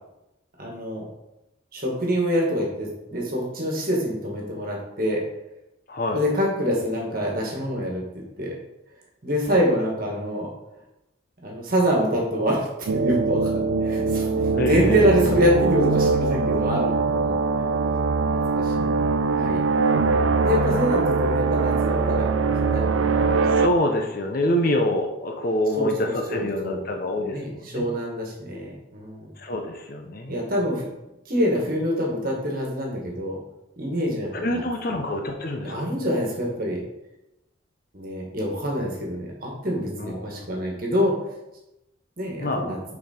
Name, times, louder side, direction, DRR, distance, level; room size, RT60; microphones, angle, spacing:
voice 1, 0.6-1.0 1.7-5.2 6.1-8.0 8.4-8.5 9.2-10.5 11.4-12.7 12.9-17.4 18.5-19.7 20.4-22.3 22.7-23.3 25.8-25.9 26.3-26.8 27.2-29.3 30.3-30.8 31.3-33.4 33.8-34.6 35.6-36.8 37.9-41.1 42.2-42.8, equal, 45° right, -2 dB, 1.6 m, -25 dB
voice 2, 5.9-6.2 14.5-15.3 19.8-20.8 23.5-27.4 27.7-27.9 29.4-30.4 34.3-35.8 40.0-40.5 42.4-42.7, left 1 dB, 45° left, 3 dB, 0.7 m, -26 dB
sound 1, 12.9-23.7, right 4 dB, 80° right, 0.4 m, -22 dB
6.0 x 4.2 x 4.4 m, 0.93 s
head